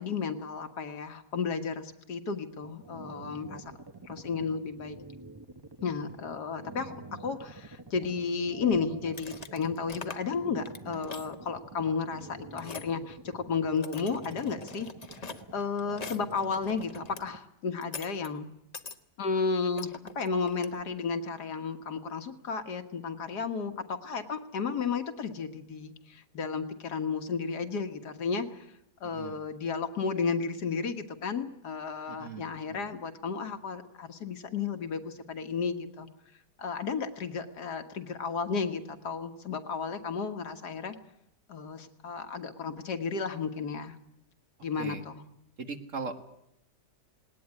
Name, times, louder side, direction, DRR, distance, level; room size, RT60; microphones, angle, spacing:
voice 1, 0.0-3.6 4.1-5.0 5.8-15.3 15.5-18.5 19.2-28.7 29.0-36.1 36.6-41.0 41.5-44.0 44.6-45.2, left 5 dB, 75° left, 7 dB, 2.0 m, -33 dB
sound 1, 2.6-17.4, right 3 dB, 20° right, 0.8 m, -47 dB
sound 2, 9.1-10.4 10.6-11.4 12.6-12.9 13.6-17.2 17.8-18.3 18.7-19.0 19.8-20.8, left 4 dB, 30° left, 1.0 m, -44 dB
voice 2, 32.1-32.8 44.8-45.0 45.6-46.2, right 4 dB, 50° right, 7 dB, 1.8 m, -39 dB
19.5 x 19.0 x 9.8 m, 0.77 s
omnidirectional pair, 1.7 m